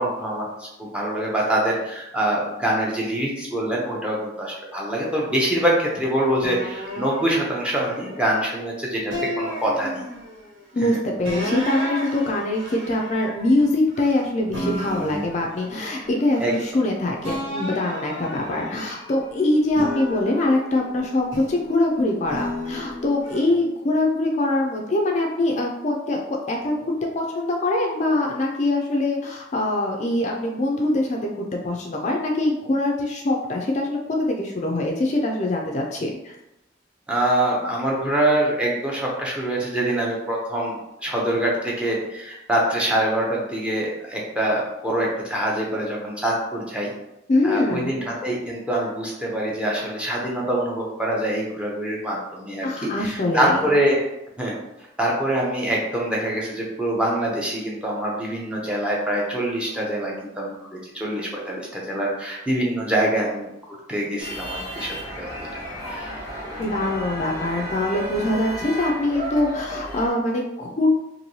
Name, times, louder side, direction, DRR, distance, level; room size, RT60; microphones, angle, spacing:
voice 1, 0.0-10.0 10.8-11.0 15.8-15.9 16.4-16.5 37.1-46.9 47.4-54.0 54.4-54.6 55.0-63.5 63.9-65.3 65.5-66.1, right 1 dB, 5° right, -3 dB, 0.6 m, -25 dB
sound 1, 6.4-8.6 9.1-10.5 11.2-14.2 14.5-16.9 17.2-19.2 19.7-21.7 22.3-23.4, equal, 85° right, 1.3 m, -33 dB
voice 2, 10.7-34.0 34.3-36.4 47.3-48.0 52.6-53.7 66.6-71.0, left 2 dB, 40° left, 0 dB, 0.3 m, -23 dB
sound 2, 64.2-70.1, equal, 25° right, 1.0 m, -33 dB
3.0 x 2.6 x 2.7 m, 0.89 s
head